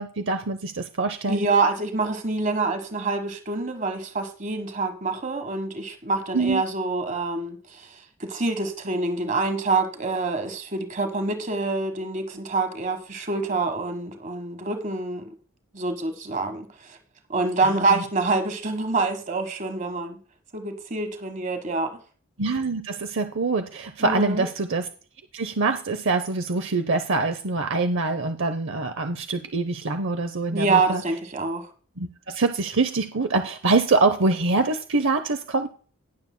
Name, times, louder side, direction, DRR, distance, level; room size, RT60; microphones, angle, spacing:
voice 1, 0.0-1.4 6.3-6.6 17.6-18.0 22.4-24.9 25.3-31.0 32.0-35.7, right 3 dB, 60° right, 0.7 m, -24 dB
voice 2, 1.3-15.3 15.7-17.0 17.3-20.2 20.5-22.0 24.0-24.5 30.5-31.7, right 3 dB, 35° right, 1.4 m, -26 dB
19.0 x 7.0 x 2.2 m
head